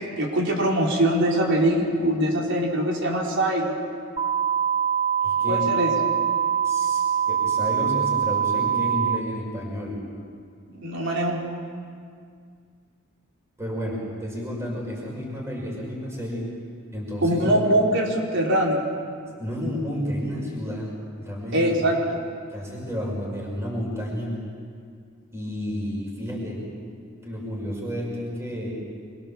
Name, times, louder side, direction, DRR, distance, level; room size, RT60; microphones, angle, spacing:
voice 1, 0.2-3.7 5.5-5.9 10.7-11.4 17.2-18.8 21.5-22.2, right 1 dB, 60° right, -1 dB, 4.2 m, -22 dB
sound 1, 4.2-9.2, right 8 dB, 30° right, 1.0 m, -23 dB
voice 2, 5.2-5.7 6.6-7.0 7.3-10.1 13.6-16.5 16.9-17.6 19.4-21.7 22.5-24.4 25.3-26.7 27.2-28.8, equal, 15° right, -3 dB, 5.4 m, -31 dB
27.0 x 22.5 x 7.3 m, 2.2 s
head